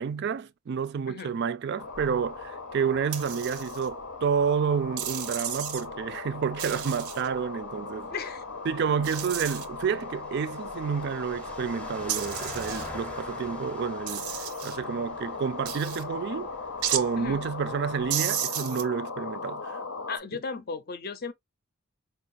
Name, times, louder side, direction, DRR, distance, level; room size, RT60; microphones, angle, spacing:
voice 1, 0.0-8.1 8.7-14.4 14.6-16.5 16.9-19.8, right 6 dB, 50° right, 0.3 m, -30 dB
sound 1, 1.8-20.2, left 4 dB, 85° left, 0.7 m, -38 dB
sound 2, 1.8-18.1, left 1 dB, 5° left, 0.6 m, -47 dB
sound 3, 3.1-3.9 5.0-5.9 6.6-7.3 9.0-9.7 12.1-12.9 14.1-14.8 15.7-16.0 16.8-17.1 18.1-18.8, right 10 dB, 90° right, 0.6 m, -33 dB
voice 2, 8.1-8.4 17.2-17.4 20.1-21.3, left 5 dB, 45° left, 0.5 m, -35 dB
4.5 x 2.4 x 2.5 m
head